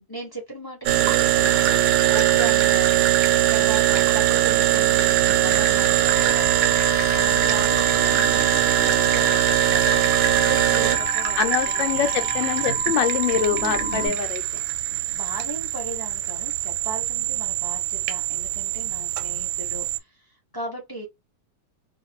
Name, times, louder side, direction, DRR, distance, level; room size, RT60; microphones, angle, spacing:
voice 1, 0.1-3.1 3.5-6.7 7.1-9.9 10.2-11.9 14.9-21.1, right 1 dB, 20° left, 0.6 m, -37 dB
sound 1, 0.9-20.0, right 12 dB, 90° right, 1.3 m, -21 dB
sound 2, 5.1-14.2, right 9 dB, 70° right, 0.7 m, -38 dB
sound 3, 6.1-14.1, left 7 dB, 55° left, 1.0 m, -34 dB
voice 2, 11.4-14.6, left 9 dB, 80° left, 1.4 m, -25 dB
2.9 x 2.5 x 2.7 m
omnidirectional pair, 2.0 m